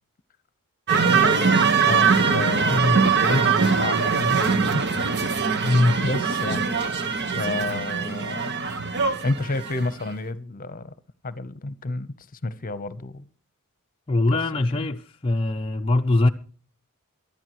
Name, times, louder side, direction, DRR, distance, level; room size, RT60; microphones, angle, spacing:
sound 1, 0.9-9.9, right 5 dB, 50° right, 1.3 m, -22 dB
voice 1, 1.8-4.4 4.7-4.8 6.0-6.6 7.3-8.5 9.2-10.9 11.2-12.1 12.4-13.2 14.3-14.4 14.8-14.9, left 2 dB, 40° left, 0.9 m, -30 dB
voice 2, 2.7-3.1 5.6-6.0 14.1-16.3, left 2 dB, 25° left, 0.6 m, -22 dB
23.0 x 12.0 x 3.1 m
head